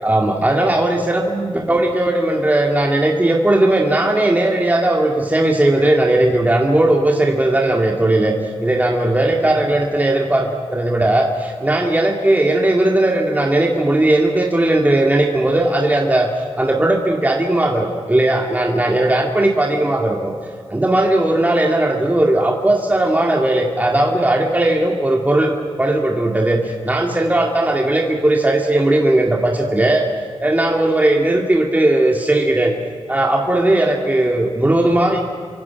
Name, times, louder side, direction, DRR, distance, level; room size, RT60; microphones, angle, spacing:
voice 1, 0.0-8.3 8.6-16.3 16.6-20.3 20.7-25.5 25.8-30.1 30.4-32.7 33.1-35.2, right 1 dB, 15° right, 0 dB, 2.3 m, -17 dB
29.0 x 24.5 x 6.0 m, 2.1 s
wide cardioid pair, 80°, 11 cm